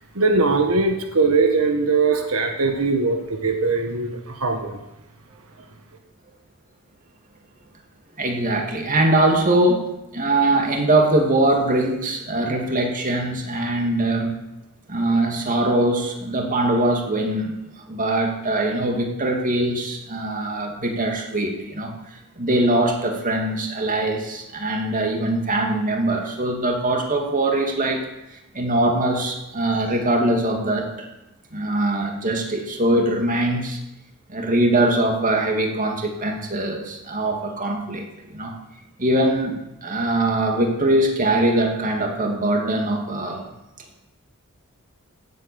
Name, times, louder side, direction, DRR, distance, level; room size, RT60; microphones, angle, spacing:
voice 1, 0.1-4.8, right 3 dB, 90° right, 5 dB, 1.5 m, -21 dB
voice 2, 8.2-9.8 10.1-14.3 14.9-17.5 17.9-28.0 28.5-31.1 31.5-33.8 34.3-38.5 39.0-43.5, right 1 dB, 40° right, 2 dB, 2.6 m, -22 dB
16.5 x 8.2 x 7.0 m, 0.92 s
head